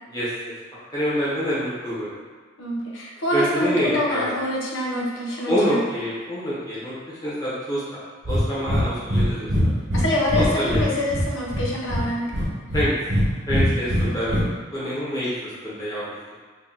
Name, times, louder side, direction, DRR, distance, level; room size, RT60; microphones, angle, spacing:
voice 1, 0.9-2.2 3.3-4.3 5.5-7.8 8.3-9.5 10.3-10.8 12.7-12.9 13.5-14.5 14.7-16.0, equal, 20° left, -10 dB, 1.1 m, -26 dB
voice 2, 2.6-5.8 9.9-12.3 14.8-14.9, left 1 dB, 85° left, -3 dB, 0.8 m, -25 dB
Breathing, 8.2-8.4 8.7-8.8 9.1-9.2 9.5-10.9 11.1-12.0 12.3-13.2 13.5-14.4, equal, 55° right, 1.3 m, -21 dB
2.9 x 2.6 x 3.9 m, 1.5 s
head